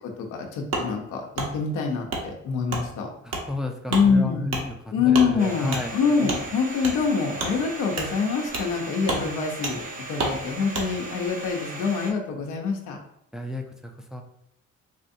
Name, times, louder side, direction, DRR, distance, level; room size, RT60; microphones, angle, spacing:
voice 1, 0.0-3.1 3.9-4.4 4.9-13.0, left 5 dB, 90° left, 2 dB, 0.7 m, -25 dB
Wood, 0.7-0.9 1.3-1.5 2.1-2.2 2.7-2.8 3.3-3.4 3.9-4.0 4.5-4.6 5.1-5.3 5.7-5.8 6.3-6.4 6.8-6.9 7.4-7.5 7.9-8.1 8.5-8.7 9.0-9.2 9.6-9.7 10.2-10.3 10.7-10.9, right 3 dB, 55° right, 1.0 m, -28 dB
voice 2, 3.2-5.9 13.3-14.2, left 2 dB, ahead, 3 dB, 0.4 m, -33 dB
Domestic sounds home sounds, 5.4-12.1, right 2 dB, 30° right, 0.8 m, -38 dB
4.2 x 2.6 x 2.6 m, 0.74 s
cardioid pair, 90°, 30 cm